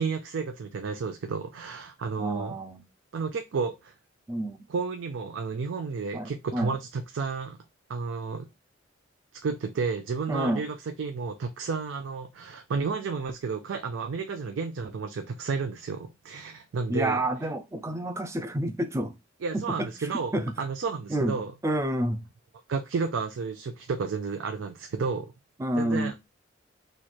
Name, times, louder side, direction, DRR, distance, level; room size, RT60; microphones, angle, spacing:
voice 1, 0.0-2.6 3.1-3.9 4.7-7.6 7.9-8.5 9.4-17.2 19.4-21.5 22.7-25.3 25.8-26.1, right 5 dB, 75° right, 0.4 m, -32 dB
voice 2, 2.2-2.8 4.3-4.6 6.1-6.8 10.3-10.7 16.9-19.1 19.5-19.9 20.3-20.7 21.1-21.4 21.6-22.2 25.6-26.1, right 1 dB, 15° right, 0.4 m, -29 dB
3.1 x 2.4 x 4.1 m
head